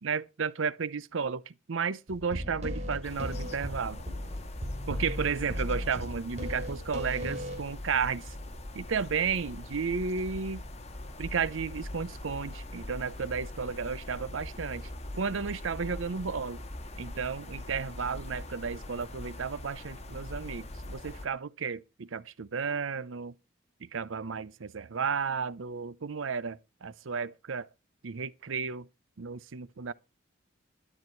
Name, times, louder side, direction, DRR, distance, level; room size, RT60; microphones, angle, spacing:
voice 1, 0.0-4.0 4.9-8.3 8.7-10.6 11.2-14.9 15.2-16.6 17.0-23.3 23.8-27.7 28.0-28.9 29.2-29.9, right 5 dB, 85° right, 0.7 m, -33 dB
sound 1, 2.1-7.7, equal, 35° right, 3.0 m, -36 dB
sound 2, 3.0-21.3, left 1 dB, 35° left, 1.8 m, -42 dB
12.5 x 11.0 x 4.5 m
head